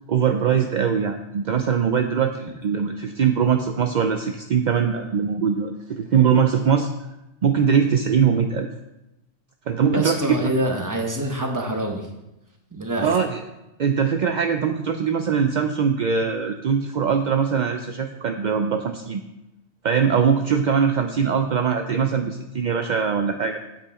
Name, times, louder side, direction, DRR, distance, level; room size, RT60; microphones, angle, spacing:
voice 1, 0.1-6.9 7.4-8.7 9.7-10.5 13.0-13.4 13.8-19.2 19.8-23.6, right 7 dB, 55° right, 6 dB, 0.5 m, -21 dB
voice 2, 9.9-12.1 12.7-13.1, right 1 dB, 15° right, 2 dB, 1.1 m, -25 dB
8.3 x 8.2 x 4.2 m, 0.93 s
omnidirectional pair, 1.3 m